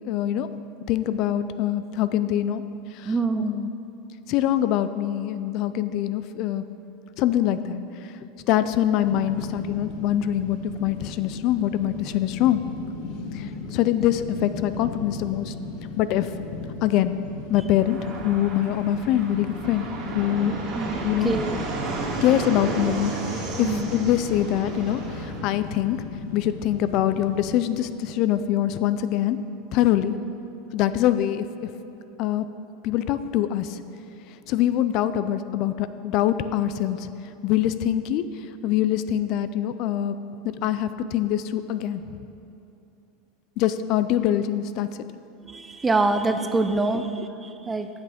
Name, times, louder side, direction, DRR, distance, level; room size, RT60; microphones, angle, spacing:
voice 1, 0.0-0.5 0.9-2.6 2.9-3.1 3.4-3.7 4.3-6.6 7.2-8.1 8.5-12.6 13.3-15.5 16.0-16.3 16.8-17.2 17.5-19.9 20.1-20.5 21.0-21.3 22.2-26.0 26.3-29.4 29.7-30.2 30.7-31.7 32.2-32.5 32.8-33.8 34.5-37.1 37.4-38.2 38.6-40.2 40.4-42.0 43.6-44.9, left 11 dB, 55° left, 12 dB, 0.3 m, -24 dB
voice 2, 3.0-3.6 20.7-21.6 23.6-23.9 45.4-47.9, right 3 dB, 15° right, 8 dB, 0.4 m, -25 dB
sound 1, 9.0-27.5, left 4 dB, 75° left, 1.1 m, -37 dB
Fixed-wing aircraft airplane, 17.8-25.4, right 3 dB, 45° right, 2.0 m, -33 dB
7.9 x 6.1 x 5.1 m, 2.7 s
supercardioid pair, 125°, 0 cm